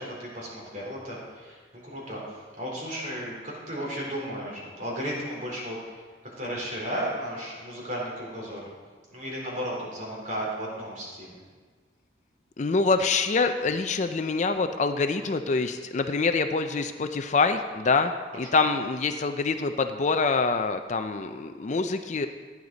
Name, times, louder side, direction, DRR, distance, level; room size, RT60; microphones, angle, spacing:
voice 1, 0.0-8.6 9.1-11.4 18.4-18.6, equal, 40° right, -4 dB, 3.7 m, -34 dB
voice 2, 12.6-18.1 18.4-22.3, left 4 dB, 35° left, 8 dB, 0.4 m, -25 dB
16.0 x 9.7 x 4.0 m, 1.5 s
head